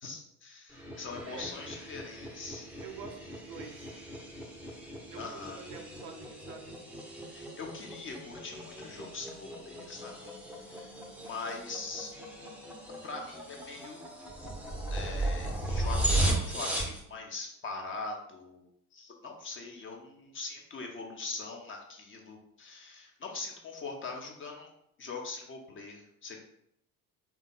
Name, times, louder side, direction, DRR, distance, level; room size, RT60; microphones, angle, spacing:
voice 1, 0.0-2.7 5.2-5.6 7.3-10.2 10.5-11.0 11.2-12.1 13.0-14.0 14.9-16.0 16.3-18.6 18.9-24.7 25.0-26.4, left 4 dB, 25° left, 1 dB, 0.8 m, -42 dB
sound 1, 0.7-17.0, right 1 dB, 5° right, 0.7 m, -36 dB
voice 2, 2.8-4.0 5.1-6.8, right 6 dB, 50° right, 4 dB, 0.7 m, -46 dB
3.5 x 2.4 x 3.8 m, 0.74 s
figure-of-eight pair, 60°, 45 cm